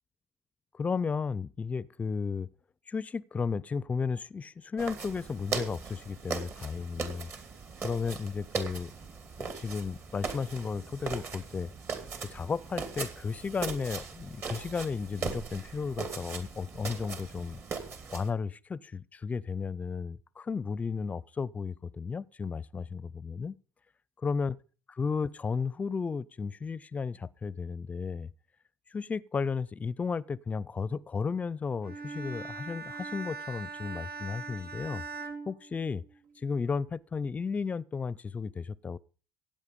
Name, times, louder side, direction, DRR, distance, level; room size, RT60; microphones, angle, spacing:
voice 1, 0.7-2.5 2.9-7.3 7.8-8.9 9.4-11.7 12.2-17.6 18.1-23.6 24.2-24.6 24.9-28.3 28.9-35.0 35.5-36.0 36.4-39.0, left 5 dB, 25° left, 0.5 m, -34 dB
sound 1, 4.8-18.3, right 5 dB, 45° right, 2.4 m, -39 dB
Bowed string instrument, 31.8-36.3, right 4 dB, 90° right, 2.0 m, -41 dB
15.5 x 9.0 x 5.3 m
cardioid pair, 105°, 6 cm